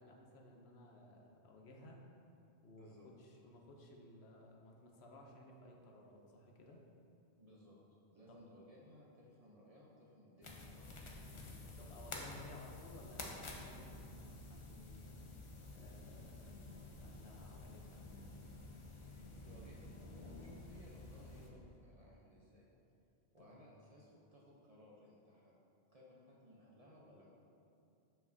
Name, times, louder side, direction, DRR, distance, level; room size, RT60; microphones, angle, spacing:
voice 1, 0.0-2.0 2.6-6.8 8.3-8.4 11.8-15.3 15.7-18.3 23.4-23.6, left 1 dB, 70° left, 0 dB, 0.9 m, -58 dB
voice 2, 2.7-3.1 7.4-7.8 8.1-11.4 19.0-22.7 23.3-25.5 25.9-27.3, equal, 40° right, -4 dB, 0.7 m, -61 dB
sound 1, 10.4-21.5, left 2 dB, 35° left, 0.5 m, -51 dB
7.0 x 5.5 x 2.7 m, 2.6 s
omnidirectional pair, 1.2 m